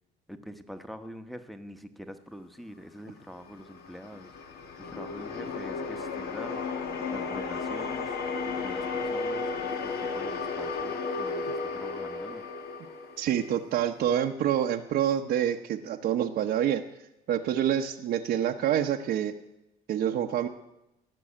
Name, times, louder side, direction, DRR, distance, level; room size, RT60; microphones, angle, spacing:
voice 1, 0.3-4.3 4.8-6.6 7.1-8.1 8.5-9.5 10.1-12.4, equal, ahead, 9 dB, 1.1 m, -44 dB
sound 1, 3.4-13.7, left 4 dB, 65° left, 1.6 m, -34 dB
voice 2, 13.2-16.8 17.3-19.3 19.9-20.5, right 10 dB, 70° right, 2 dB, 0.9 m, -27 dB
18.0 x 6.2 x 8.7 m, 0.90 s
cardioid pair, 110°, 17 cm